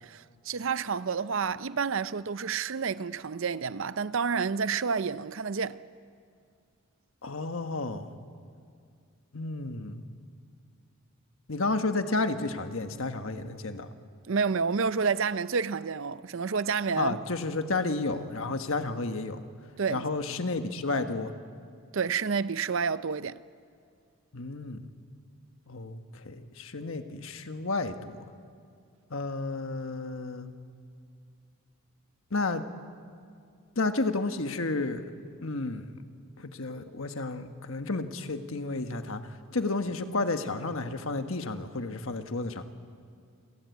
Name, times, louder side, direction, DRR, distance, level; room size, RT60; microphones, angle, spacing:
voice 1, 0.0-5.8 14.3-17.2 19.8-20.1 21.9-23.4, right 5 dB, 60° right, 0.5 m, -29 dB
voice 2, 7.2-8.1 9.3-10.0 11.5-13.9 17.0-19.4 19.9-21.3 24.3-24.8 25.7-28.2 29.1-30.5 32.3-32.6 33.7-35.1 35.4-35.9 36.4-42.6, left 3 dB, 65° left, 1.3 m, -32 dB
27.5 x 17.5 x 8.3 m
head